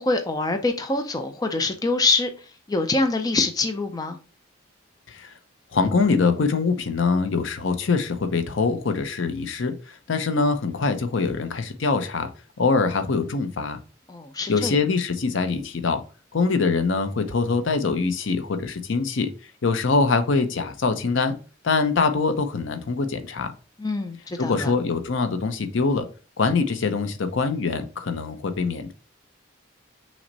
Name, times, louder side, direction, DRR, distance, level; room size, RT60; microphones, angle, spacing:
voice 1, 0.0-2.3 2.7-4.2 14.1-14.8 23.8-24.7, left 3 dB, 20° left, 0.4 m, -25 dB
voice 2, 5.7-12.3 12.6-13.8 14.5-16.0 16.3-19.3 19.6-21.4 21.6-23.5 24.4-26.1 26.4-28.9, left 4 dB, 65° left, 0.6 m, -23 dB
6.0 x 2.1 x 3.9 m
head